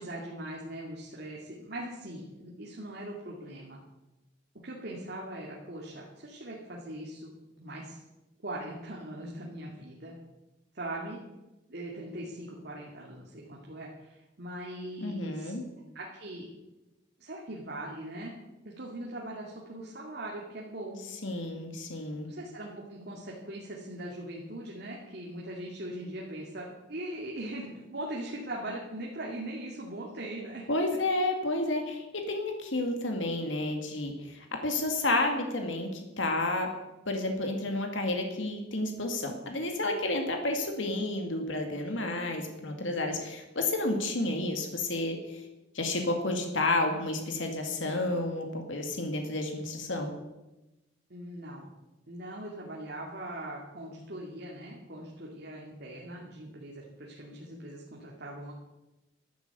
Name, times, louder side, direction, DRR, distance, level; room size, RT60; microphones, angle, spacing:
voice 1, 0.0-3.8 4.6-7.3 7.6-8.0 8.4-10.1 10.7-11.2 11.7-15.5 15.9-16.5 17.2-18.3 18.6-21.0 22.2-30.7 42.0-42.4 50.2-50.4 51.1-51.7 52.1-58.5, right 1 dB, 55° right, -3 dB, 2.5 m, -40 dB
voice 2, 15.0-15.6 21.2-22.3 30.7-36.7 37.1-45.2 45.7-50.1, left 2 dB, 80° left, 4 dB, 2.2 m, -31 dB
12.5 x 9.7 x 8.3 m, 1.0 s
head